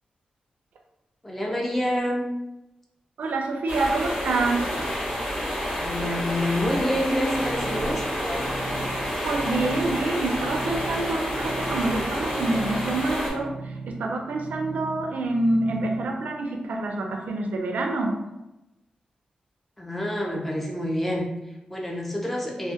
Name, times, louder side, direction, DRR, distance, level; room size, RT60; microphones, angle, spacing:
voice 1, 1.2-2.2 5.7-8.5 19.8-22.7, left 1 dB, 5° left, -1 dB, 0.4 m, -28 dB
voice 2, 3.2-4.7 9.2-18.2, right 2 dB, 75° right, 2 dB, 0.3 m, -27 dB
sound 1, 3.7-13.3, equal, 70° left, 0.8 m, -29 dB
sound 2, 7.2-16.1, right 3 dB, 25° left, 0.8 m, -39 dB
2.2 x 2.1 x 2.7 m, 0.97 s
wide cardioid pair, 165°, 3 cm